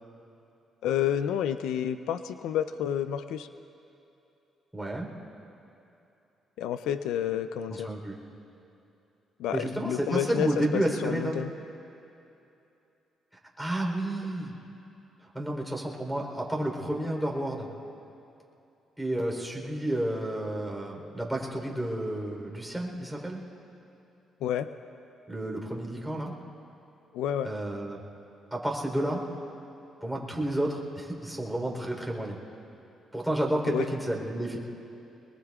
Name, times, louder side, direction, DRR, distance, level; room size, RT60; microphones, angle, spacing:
voice 1, 0.8-3.5 6.6-7.9 9.4-11.5 24.4-24.7 27.1-27.5 33.7-33.9, left 9 dB, 90° left, 11 dB, 0.4 m, -30 dB
voice 2, 4.7-5.1 7.7-8.2 9.5-11.4 13.6-14.5 15.3-17.7 19.0-23.4 25.3-26.3 27.4-28.0 28.5-29.2 30.0-32.4 33.1-34.6, right 1 dB, ahead, -2 dB, 3.6 m, -31 dB
24.0 x 21.5 x 2.4 m, 2.8 s
cardioid pair, 90°, 0 cm